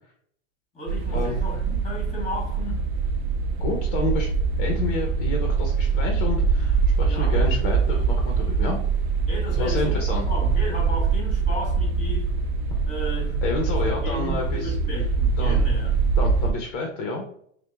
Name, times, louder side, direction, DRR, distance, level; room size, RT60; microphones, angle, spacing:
voice 1, 0.7-2.9 7.0-7.5 9.3-12.4 12.9-16.1, left 1 dB, 20° left, -2 dB, 1.3 m, -34 dB
sound 1, 0.9-16.5, right 5 dB, 55° right, 0.5 m, -23 dB
voice 2, 3.6-4.3 4.6-8.8 9.6-10.2 13.4-14.7 15.4-15.6 16.2-17.2, left 3 dB, 45° left, 1 dB, 0.6 m, -29 dB
5.7 x 2.0 x 2.3 m, 0.67 s
supercardioid pair, 170°, 37 cm